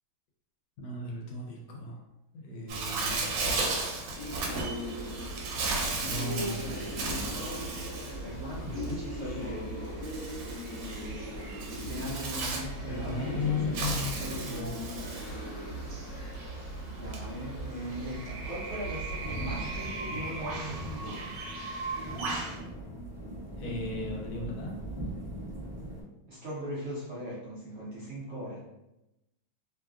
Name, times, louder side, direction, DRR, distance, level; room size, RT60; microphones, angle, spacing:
voice 1, 0.8-2.0 2.3-3.5 6.1-7.4 8.6-9.0 12.9-14.2 14.5-14.7 23.6-24.8, left 3 dB, 80° left, 0 dB, 1.4 m, -36 dB
Bird, 2.7-22.6, right 3 dB, 80° right, 1.3 m, -36 dB
sound 1, 4.2-19.9, right 1 dB, 55° left, 1.2 m, -38 dB
voice 2, 8.2-9.7 11.7-13.8 14.2-14.6 16.8-21.2 26.3-28.6, equal, 65° right, -7 dB, 0.7 m, -39 dB
sound 2, 19.2-26.0, right 1 dB, 30° left, 0.7 m, -40 dB
3.3 x 2.3 x 2.3 m, 0.92 s
omnidirectional pair, 2.1 m